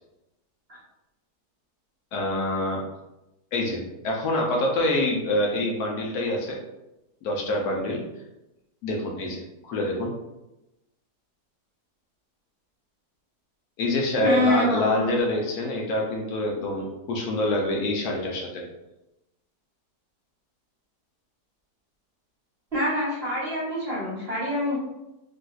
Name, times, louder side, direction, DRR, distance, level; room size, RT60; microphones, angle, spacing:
voice 1, 2.1-2.8 3.5-6.6 7.2-8.0 8.8-10.1 13.8-18.6, left 1 dB, 75° left, -1 dB, 1.1 m, -26 dB
voice 2, 14.2-15.1 22.7-24.7, equal, 40° right, -7 dB, 1.1 m, -25 dB
3.8 x 2.4 x 2.3 m, 0.95 s
omnidirectional pair, 1.7 m